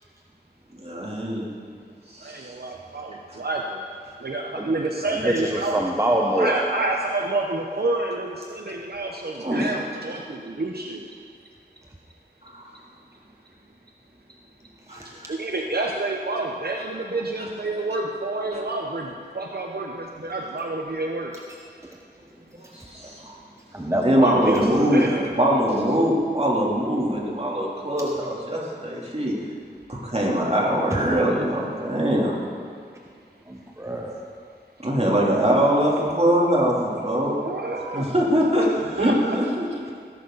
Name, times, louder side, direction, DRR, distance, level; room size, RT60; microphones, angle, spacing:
voice 1, 0.7-1.4 2.1-2.5 3.3-3.4 9.4-9.7 12.4-12.7 14.9-15.3 18.5-18.6 22.5-23.3 24.0-25.1 25.4-29.4 29.9-32.3 34.8-37.4 37.9-39.7, equal, 35° right, -4 dB, 3.3 m, -22 dB
voice 2, 2.2-3.8 4.2-5.8 6.4-11.1 15.3-21.3 24.2-24.6 24.9-25.3 37.4-38.1 38.6-38.7 39.0-39.4, right 2 dB, 65° right, 0 dB, 1.0 m, -28 dB
voice 3, 5.1-6.6 14.9-15.0 21.8-21.9 23.7-24.9 33.5-34.2, right 1 dB, 15° right, -1 dB, 1.2 m, -25 dB
18.5 x 11.0 x 4.1 m, 2.2 s
wide cardioid pair, 45°, 18 cm